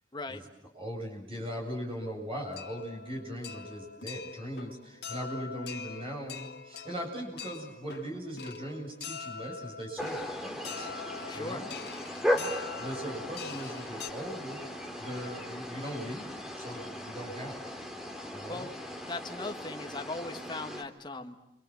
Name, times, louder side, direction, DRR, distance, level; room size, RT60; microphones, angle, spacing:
voice 1, 0.7-10.9 11.3-11.7 12.8-14.6 15.0-17.6 18.3-18.7, equal, 30° right, 0 dB, 8.0 m, -39 dB
sound 1, 2.4-14.1, left 6 dB, 70° left, 2.3 m, -43 dB
sound 2, 10.0-20.8, equal, 5° right, 2.6 m, -37 dB
voice 2, 11.3-11.6 12.2-12.5 18.5-18.7 19.1-21.4, left 2 dB, 25° left, 6 dB, 1.6 m, -39 dB
29.5 x 26.0 x 7.6 m, 0.83 s
head